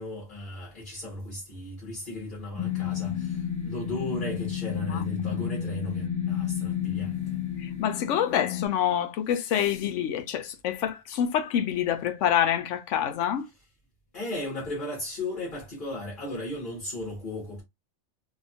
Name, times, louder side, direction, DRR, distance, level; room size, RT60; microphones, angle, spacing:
voice 1, 0.0-7.2 14.1-17.6, left 1 dB, 45° left, 1.2 m, -36 dB
sound 1, 2.6-8.7, left 9 dB, 10° left, 0.5 m, -31 dB
voice 2, 7.6-13.5, left 9 dB, 85° left, 0.9 m, -27 dB
2.8 x 2.3 x 2.5 m
omnidirectional pair, 1.2 m